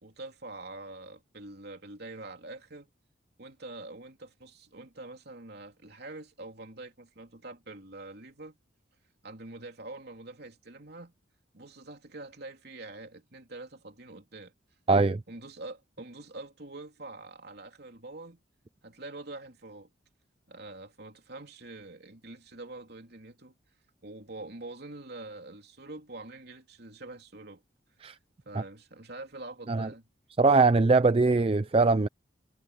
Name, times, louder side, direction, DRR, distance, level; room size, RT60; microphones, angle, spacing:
voice 1, 0.0-2.9 3.4-8.6 9.2-11.1 11.5-14.5 15.3-18.4 18.8-19.9 20.5-23.5 24.0-27.6 28.4-30.1 31.1-31.2, right 2 dB, 55° right, 3.4 m, -45 dB
voice 2, 14.9-15.2 28.0-28.2 29.7-29.9 30.4-32.1, right 3 dB, 30° right, 0.4 m, -22 dB
head